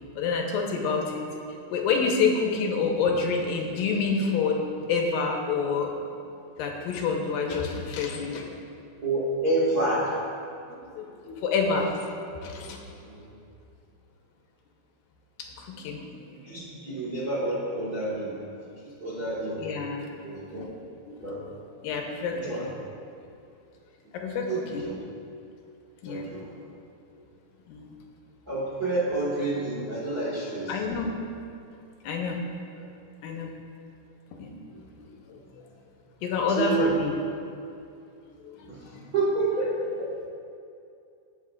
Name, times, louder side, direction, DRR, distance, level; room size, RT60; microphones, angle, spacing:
voice 1, 0.2-1.3 1.7-4.6 4.9-5.9 6.6-8.5 10.7-12.8 15.6-16.2 19.6-20.1 20.6-20.7 21.1-22.7 24.1-24.9 26.0-26.3 27.7-27.9 30.7-31.1 32.0-32.4 33.2-33.5 34.3-34.6 35.1-35.6 36.2-37.1 38.3-39.1, left 5 dB, 75° left, 1 dB, 2.6 m, -28 dB
voice 2, 9.0-10.2 13.0-13.3 16.3-18.4 18.8-19.7 20.2-20.7 21.2-21.4 22.3-22.7 24.5-24.9 26.1-26.5 28.5-30.8 32.8-32.9 34.7-34.8 36.5-36.9 38.7-40.1, right 2 dB, 50° right, -8 dB, 1.1 m, -29 dB
19.5 x 7.6 x 2.4 m, 2.5 s
omnidirectional pair, 4.4 m